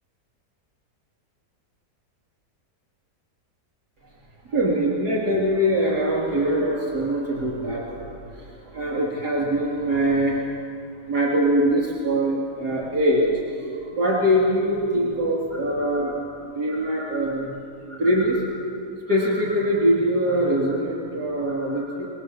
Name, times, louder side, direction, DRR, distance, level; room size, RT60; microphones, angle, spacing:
voice 1, 4.5-7.8 8.7-10.4 11.1-13.3 14.0-16.1 16.6-17.5 17.9-18.4 19.1-22.1, equal, 80° right, -4 dB, 4.2 m, -22 dB
27.0 x 20.0 x 7.7 m, 2.7 s
omnidirectional pair, 1.7 m